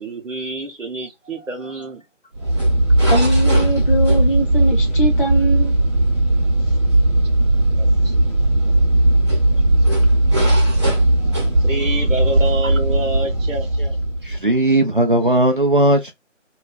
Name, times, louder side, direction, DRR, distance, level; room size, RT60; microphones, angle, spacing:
voice 1, 0.0-2.1 2.4-2.6 7.8-8.6 9.9-10.0 10.9-14.0, right 2 dB, 90° right, 1.0 m, -29 dB
sound 1, 2.3-14.5, right 1 dB, 25° right, 0.9 m, -17 dB
voice 2, 3.1-5.8, right 1 dB, 45° left, 0.5 m, -22 dB
voice 3, 14.2-16.1, right 1 dB, 45° right, 0.5 m, -17 dB
3.0 x 2.2 x 2.3 m
figure-of-eight pair, 160°, 38 cm